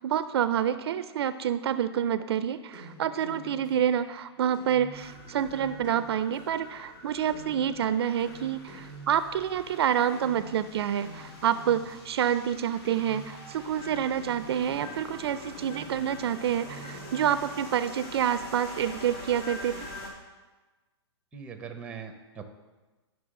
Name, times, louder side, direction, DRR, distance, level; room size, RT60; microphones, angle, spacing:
voice 1, 0.0-19.9, right 9 dB, 60° right, 13 dB, 0.4 m, -28 dB
sound 1, 2.7-9.9 10.1-12.5 12.8-15.1 15.6-17.7, right 2 dB, 45° left, 2.2 m, -48 dB
sound 2, 4.9-20.1, left 1 dB, 65° left, 2.5 m, -45 dB
voice 2, 21.3-22.4, right 6 dB, 5° right, 6 dB, 0.7 m, -41 dB
11.0 x 6.0 x 3.7 m, 1.2 s
hypercardioid pair, 150°, 15 cm